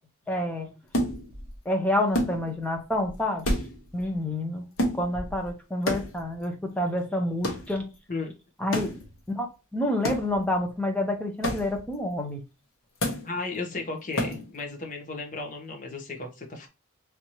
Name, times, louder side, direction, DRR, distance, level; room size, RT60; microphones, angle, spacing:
voice 1, 0.3-0.7 1.6-3.5 3.9-4.6 4.9-7.8 8.6-9.0 9.3-12.4, left 1 dB, 5° left, 2 dB, 0.8 m, -28 dB
sound 1, 0.9-1.6 2.1-2.8 3.0-3.1 3.4-4.2 4.8-5.5 5.9-6.4 7.4-7.8 8.7-9.1 10.0-10.5 11.4-11.9 13.0-13.4 14.1-14.6, equal, 65° left, 1.1 m, -30 dB
voice 2, 13.2-16.7, left 3 dB, 35° left, 3 dB, 0.9 m, -35 dB
3.4 x 2.8 x 2.9 m, 0.29 s
head